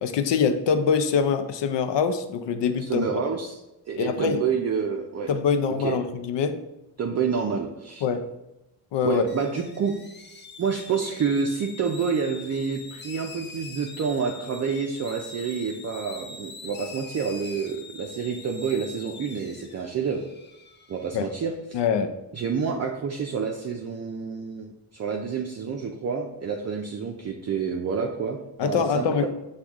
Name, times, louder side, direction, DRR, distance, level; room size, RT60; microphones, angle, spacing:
voice 1, 0.0-3.2 4.0-4.4 5.3-6.6 8.0-8.2 8.9-9.2 21.1-21.3 21.7-22.1 28.6-29.3, left 6 dB, 80° left, 9 dB, 0.6 m, -24 dB
voice 2, 2.9-3.6 3.9-5.3 5.8-6.0 7.0-8.0 9.0-9.9 10.6-20.2 20.9-21.8 22.3-29.3, right 6 dB, 40° right, 1 dB, 0.5 m, -28 dB
sound 1, 9.3-21.5, left 3 dB, 25° left, 0.5 m, -44 dB
6.2 x 2.4 x 3.5 m, 0.94 s
cardioid pair, 105°, 42 cm